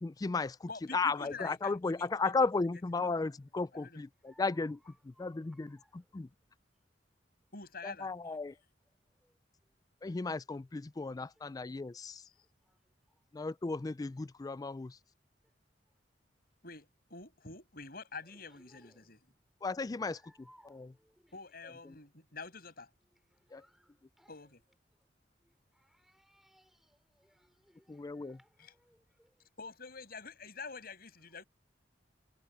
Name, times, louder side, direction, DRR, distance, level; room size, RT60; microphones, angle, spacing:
voice 1, 0.0-6.3 7.8-8.6 10.0-12.2 13.3-15.0 19.6-20.9 21.9-22.0 23.5-23.6 27.9-28.4, left 3 dB, 20° left, 0.3 m, -35 dB
voice 2, 0.7-2.5 2.7-3.1 3.7-4.0 7.5-8.1 16.6-19.3 21.3-22.9 24.3-24.6 28.6-28.7 29.6-31.4, left 4 dB, 55° left, 7.1 m, -47 dB
voice 3, 4.2-6.0 9.2-9.3 12.6-12.8 18.5-19.1 20.0-21.3 23.3-24.3 25.4-29.5, equal, ahead, 3.0 m, -66 dB
head